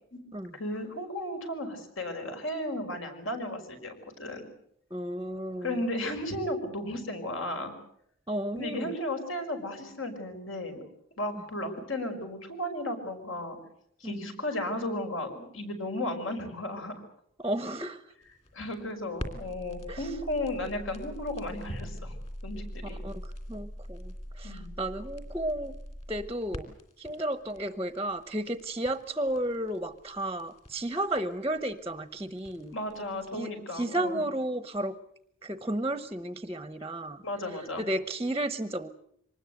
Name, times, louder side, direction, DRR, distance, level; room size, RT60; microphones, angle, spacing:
voice 1, 0.5-4.4 5.6-7.7 8.6-10.9 11.2-13.6 14.0-16.9 18.5-22.2 22.4-23.0 24.4-24.7 32.7-34.2 37.2-37.8, left 1 dB, 70° left, 5 dB, 5.6 m, -34 dB
voice 2, 4.9-5.8 8.3-8.9 14.0-14.3 17.4-18.0 19.9-20.1 22.8-25.8 26.1-32.7 33.3-35.0 35.4-38.9, right 1 dB, 15° right, 11 dB, 0.9 m, -33 dB
sound 1, 18.2-33.4, equal, 30° left, 3.0 m, -43 dB
25.0 x 20.0 x 8.0 m, 0.70 s
head